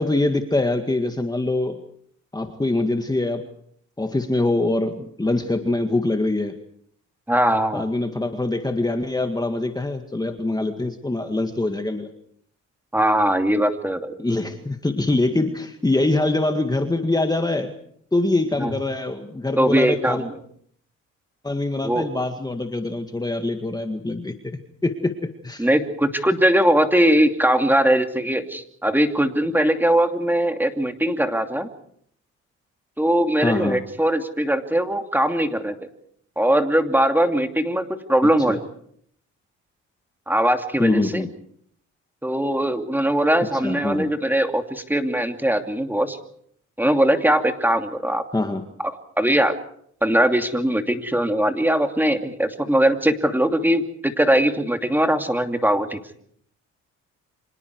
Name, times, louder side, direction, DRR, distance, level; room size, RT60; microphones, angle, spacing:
voice 1, 0.0-1.8 2.3-3.4 4.0-6.6 7.7-12.1 14.2-17.7 18.1-20.2 21.4-24.3 24.8-25.1 25.4-25.7 33.4-33.8 38.5-38.6 40.8-41.3 43.5-44.1 48.3-48.6, left 2 dB, 15° left, 6 dB, 2.0 m, -24 dB
voice 2, 7.3-7.9 12.9-14.2 18.6-18.7 19.6-20.4 21.8-22.1 25.6-31.7 33.0-35.8 36.4-38.6 40.3-41.3 42.2-46.2 46.8-48.2 49.2-49.6 50.0-56.0, right 1 dB, 5° right, 6 dB, 2.7 m, -20 dB
29.5 x 26.0 x 4.8 m, 0.64 s
cardioid pair, 90°, 30 cm